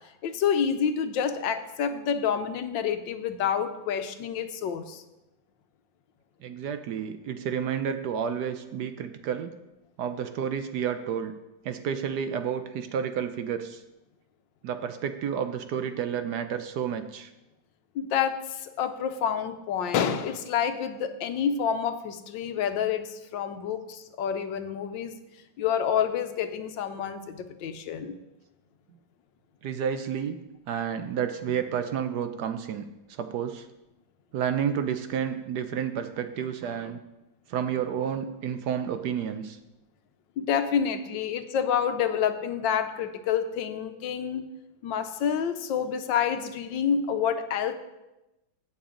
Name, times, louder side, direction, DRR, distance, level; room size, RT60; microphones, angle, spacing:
voice 1, 0.2-5.0 17.9-25.2 25.6-28.2 40.4-44.5 44.8-47.7, left 8 dB, 80° left, 8 dB, 1.4 m, -28 dB
voice 2, 6.4-9.5 10.0-11.3 11.6-13.8 14.6-17.3 29.6-30.4 30.7-33.7 34.3-37.0 37.5-39.6, right 8 dB, 70° right, 9 dB, 1.1 m, -30 dB
15.5 x 7.1 x 3.8 m, 0.97 s
omnidirectional pair, 2.1 m